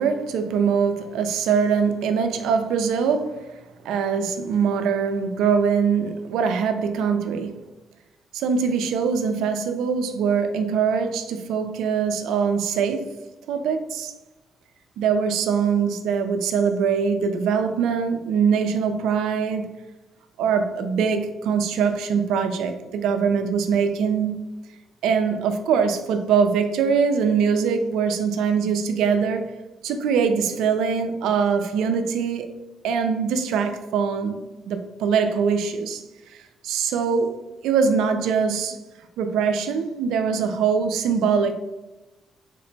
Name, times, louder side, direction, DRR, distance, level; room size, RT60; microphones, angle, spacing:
voice 1, 0.0-3.5 3.8-7.6 8.3-13.1 13.5-14.1 15.0-19.7 20.4-24.5 25.0-29.5 29.8-32.5 32.8-36.0 36.3-37.4 37.6-38.8 39.2-41.5, right 6 dB, 90° right, 7 dB, 0.4 m, -23 dB
3.6 x 2.1 x 3.9 m, 1.0 s
cardioid pair, 90°, 0 cm